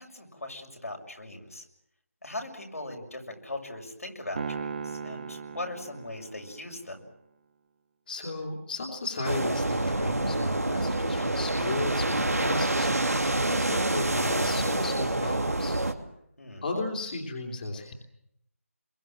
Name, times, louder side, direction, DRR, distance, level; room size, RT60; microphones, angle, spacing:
voice 1, 0.0-1.6 2.2-7.0 16.4-16.6, left 2 dB, 80° left, 1 dB, 6.7 m, -39 dB
Piano, 4.4-6.8, right 5 dB, 40° right, 2.2 m, -37 dB
voice 2, 8.1-15.8 16.6-17.9, left 2 dB, 35° left, 1 dB, 3.0 m, -34 dB
sound 1, 9.2-15.9, right 2 dB, 90° right, 2.7 m, -27 dB
26.0 x 22.5 x 7.6 m, 0.76 s
figure-of-eight pair, 160°, 8 cm